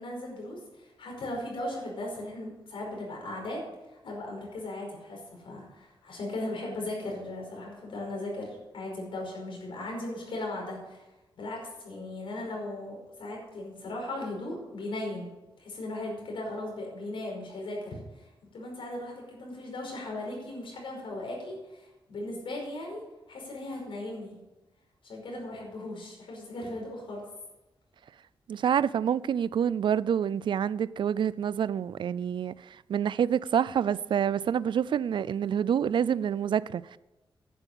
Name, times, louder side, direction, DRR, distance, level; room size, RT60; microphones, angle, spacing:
voice 1, 0.0-3.6 4.0-11.0 11.4-15.3 15.6-18.2 18.5-23.0 23.3-24.4 25.0-27.2, left 1 dB, 90° left, 5.2 m, -37 dB
voice 2, 28.5-37.0, right 8 dB, 65° right, 0.4 m, -27 dB
11.0 x 9.1 x 7.0 m
wide cardioid pair, 150°, 9 cm